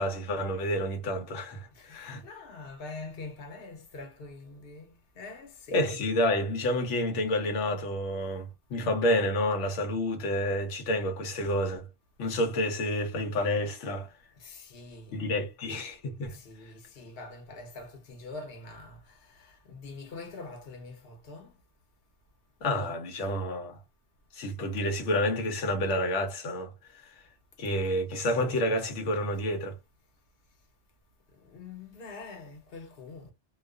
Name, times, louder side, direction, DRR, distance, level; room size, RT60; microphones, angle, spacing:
voice 1, 0.0-2.2 5.7-11.9 12.2-14.1 15.1-16.4 22.6-23.8 24.3-26.7 27.0-27.1 27.6-29.7, left 1 dB, 85° left, 1.0 m, -29 dB
voice 2, 1.9-4.8 5.2-5.8 14.4-15.1 16.4-19.0 19.7-21.5 31.5-33.3, left 3 dB, 55° left, 1.0 m, -44 dB
2.3 x 2.3 x 2.3 m
omnidirectional pair, 1.2 m